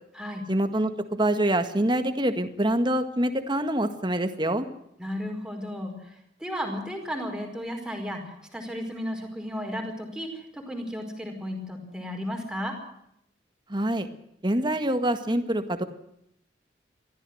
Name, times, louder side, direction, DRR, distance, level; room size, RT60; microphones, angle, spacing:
voice 1, 0.5-4.7 13.7-14.1 14.4-15.8, right 1 dB, 25° right, 8 dB, 1.7 m, -25 dB
voice 2, 5.0-5.9 6.4-12.8, equal, 5° right, 3 dB, 5.0 m, -34 dB
23.5 x 15.0 x 7.9 m, 0.75 s
head